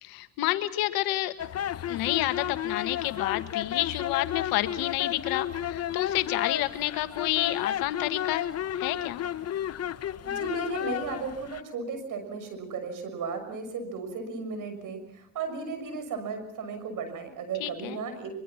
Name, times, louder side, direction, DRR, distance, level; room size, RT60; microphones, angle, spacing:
voice 1, 0.0-1.3 1.9-8.5 8.7-9.2 17.6-18.0, left 16 dB, 80° left, 11 dB, 1.6 m, -29 dB
sound 1, 1.4-11.6, left 11 dB, 45° left, 1.0 m, -32 dB
voice 2, 10.2-18.3, right 5 dB, 65° right, 8 dB, 6.5 m, -35 dB
24.0 x 23.0 x 5.9 m, 0.75 s
supercardioid pair, 75°, 35 cm